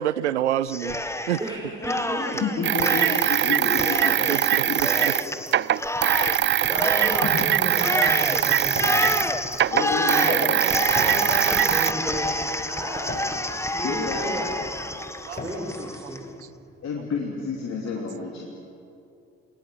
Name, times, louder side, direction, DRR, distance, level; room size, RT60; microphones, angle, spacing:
voice 1, 0.0-1.4 4.3-5.1 15.2-15.4, right 11 dB, 80° right, 18 dB, 0.6 m, -27 dB
Cheering, 0.7-1.5 1.8-16.2, left 1 dB, 10° left, 1.7 m, -29 dB
voice 2, 1.4-2.7 4.9-5.4 6.6-9.1 10.1-13.1 13.7-14.5 15.4-16.2, right 1 dB, 10° right, -3 dB, 6.2 m, -34 dB
voice 3, 2.2-4.8 6.0-7.0 7.3-7.8 9.7-10.6 13.8-14.4 16.8-18.5, left 4 dB, 50° left, -1 dB, 3.0 m, -30 dB
sound 1, 2.6-9.3 9.5-11.9, right 11 dB, 35° right, 0.5 m, -22 dB
sound 2, 7.7-16.9, left 2 dB, 25° left, 8.0 m, -41 dB
29.0 x 19.0 x 7.7 m, 2.6 s
figure-of-eight pair, 40°, 34 cm